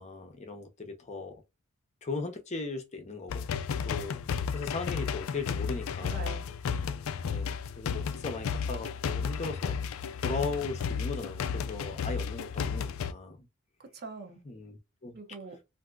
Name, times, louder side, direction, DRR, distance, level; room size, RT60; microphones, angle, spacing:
voice 1, 0.0-1.3 2.0-3.5 3.8-4.2 4.5-6.4 7.3-9.7 10.2-13.5 14.4-15.2, left 3 dB, 35° left, 0.7 m, -38 dB
sound 1, 3.3-13.1, left 6 dB, 75° left, 0.4 m, -33 dB
voice 2, 6.0-6.9 13.8-14.5 15.1-15.6, right 4 dB, 50° right, 0.9 m, -44 dB
3.5 x 2.6 x 2.4 m
head